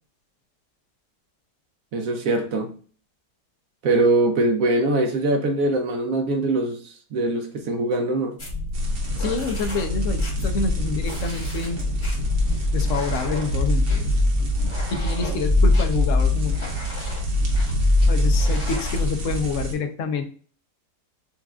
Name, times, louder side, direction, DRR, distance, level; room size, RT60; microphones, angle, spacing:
voice 1, 1.9-2.7 3.8-8.4, right 2 dB, 65° right, 0.9 m, -22 dB
sound 1, 8.4-19.1, left 2 dB, 20° left, 0.9 m, -23 dB
sound 2, 8.7-19.7, right 2 dB, 85° right, 1.7 m, -30 dB
voice 2, 9.2-11.8 12.7-14.1 14.9-16.8 18.1-20.2, left 5 dB, 65° left, 0.8 m, -28 dB
7.1 x 2.4 x 2.3 m
omnidirectional pair, 1.8 m